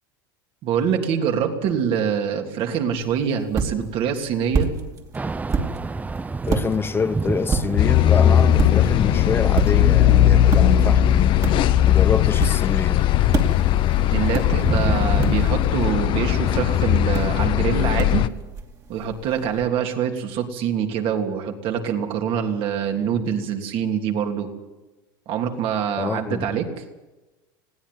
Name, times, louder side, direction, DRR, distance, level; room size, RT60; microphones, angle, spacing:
voice 1, 0.6-4.7 13.9-18.2 18.9-24.5 25.3-26.7, right 8 dB, 50° right, 3.1 m, -25 dB
sound 1, 2.9-19.7, right 5 dB, 30° right, 2.8 m, -31 dB
Thunder / Rain, 5.1-15.5, right 3 dB, 15° right, 0.6 m, -32 dB
voice 2, 6.5-11.3 11.8-13.0 26.0-26.5, left 5 dB, 20° left, 1.1 m, -26 dB
sound 2, 7.8-18.3, left 11 dB, 45° left, 0.9 m, -18 dB
20.0 x 16.5 x 9.4 m
hypercardioid pair, 105°, 11 cm